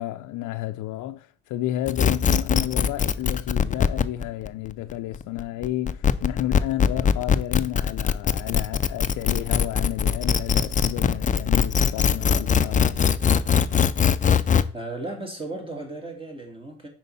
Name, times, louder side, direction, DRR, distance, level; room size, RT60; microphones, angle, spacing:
voice 1, 0.0-13.2, left 14 dB, 85° left, 0.5 m, -31 dB
sound 1, 1.9-14.6, left 7 dB, 25° left, 0.4 m, -21 dB
voice 2, 14.7-16.9, right 2 dB, 15° right, 2.2 m, -35 dB
5.5 x 4.5 x 5.3 m
cardioid pair, 90°, 30 cm